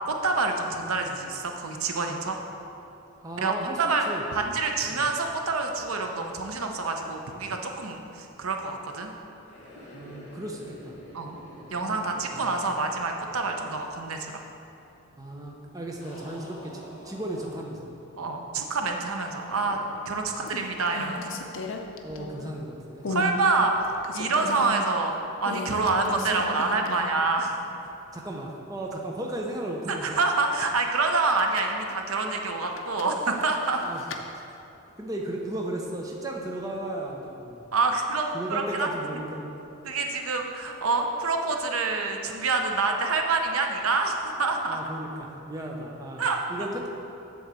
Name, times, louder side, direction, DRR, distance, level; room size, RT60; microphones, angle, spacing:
voice 1, 0.1-2.4 3.4-4.0 4.3-9.1 11.1-11.4 11.7-14.4 18.2-19.8 20.0-21.4 23.1-25.1 25.4-27.9 29.9-33.8 37.7-38.9 39.8-44.8 46.2-46.4, right 3 dB, 85° right, 3 dB, 0.7 m, -27 dB
voice 2, 3.2-4.2 4.9-5.1 9.9-11.0 12.3-12.6 15.2-17.9 20.3-20.5 22.0-23.1 28.1-30.2 33.8-34.0 35.0-37.6 38.3-39.5 44.7-46.2 46.5-46.9, right 1 dB, 15° right, -1 dB, 0.6 m, -35 dB
sound 1, 9.4-13.6 13.8-13.9 16.0-18.0 19.4-20.1 20.8-21.6, equal, 30° left, 1.4 m, -47 dB
sound 2, 19.7-20.1 20.4-22.6 23.0-23.4 23.7-24.8 25.4-27.2 27.5-27.6 31.1-31.8 32.7-34.2, left 3 dB, 65° left, 0.6 m, -36 dB
7.8 x 3.9 x 6.8 m, 2.9 s
head